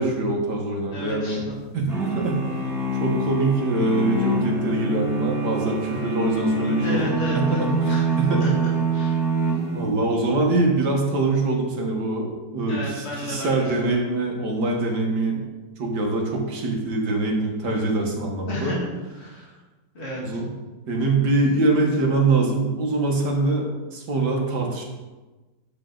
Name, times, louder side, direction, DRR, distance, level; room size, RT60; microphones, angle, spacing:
voice 1, 0.0-1.4 1.7-2.6 2.9-7.7 8.2-8.5 9.7-15.4 15.8-18.7 20.2-20.5 20.9-24.8, right 2 dB, 75° right, 0 dB, 2.0 m, -24 dB
voice 2, 0.9-1.6 6.8-8.1 8.4-9.2 12.7-14.0 18.5-19.6 19.9-20.4, left 1 dB, 40° left, -5 dB, 2.5 m, -32 dB
sound 1, 1.9-10.2, right 2 dB, ahead, 1.8 m, -25 dB
10.0 x 7.3 x 3.9 m, 1.2 s
omnidirectional pair, 1.8 m